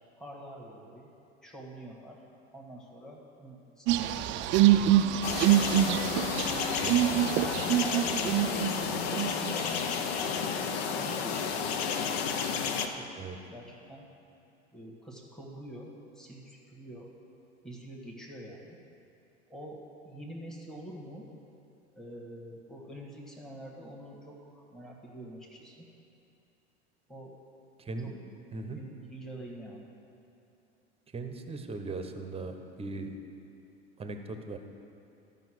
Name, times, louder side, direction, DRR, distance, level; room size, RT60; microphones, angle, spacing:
voice 1, 0.2-1.1 1.4-2.2 2.5-5.4 7.3-9.8 10.2-10.5 11.0-12.6 12.9-13.1 13.5-14.1 14.7-17.1 17.6-18.8 19.5-21.2 21.9-25.9 27.1-27.4 28.0-28.1 28.7-29.9, right 1 dB, ahead, -2 dB, 1.5 m, -46 dB
sound 1, 3.9-8.7 9.1-9.5, right 12 dB, 35° right, 0.4 m, -25 dB
sound 2, 5.2-12.9, left 6 dB, 65° left, 0.8 m, -31 dB
voice 2, 6.8-7.3 13.2-13.4 27.9-28.1 28.5-28.8 31.1-33.1 34.0-34.6, right 3 dB, 15° right, 6 dB, 0.9 m, -39 dB
12.5 x 5.4 x 6.3 m, 2.7 s
hypercardioid pair, 80°, 33 cm